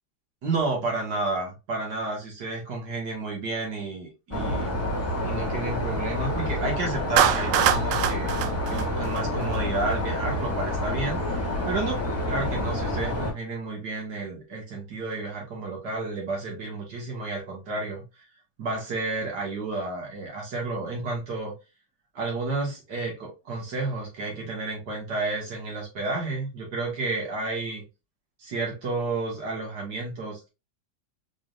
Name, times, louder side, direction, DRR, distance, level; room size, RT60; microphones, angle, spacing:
voice 1, 0.4-4.7 5.2-8.4 8.7-12.0 12.3-18.0 18.6-21.5 22.1-27.8 28.4-30.5, right 3 dB, 65° right, 2.2 m, -31 dB
sound 1, 4.3-13.3, left 1 dB, 10° left, 1.1 m, -28 dB
Clapping, 7.2-9.6, right 10 dB, 90° right, 1.3 m, -24 dB
4.9 x 3.4 x 2.4 m
omnidirectional pair, 1.9 m